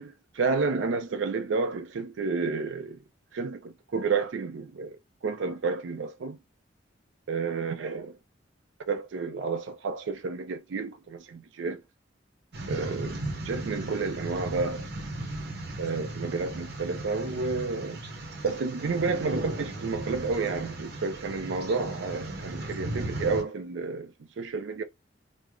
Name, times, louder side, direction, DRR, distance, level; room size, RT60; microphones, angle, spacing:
voice 1, 0.0-3.0 3.3-6.4 7.3-8.2 8.9-11.8 12.7-14.9 15.8-18.0 18.4-24.8, right 4 dB, 80° right, 0.4 m, -31 dB
sound 1, 12.5-23.4, right 1 dB, 60° right, 0.9 m, -36 dB
3.1 x 2.0 x 3.6 m
head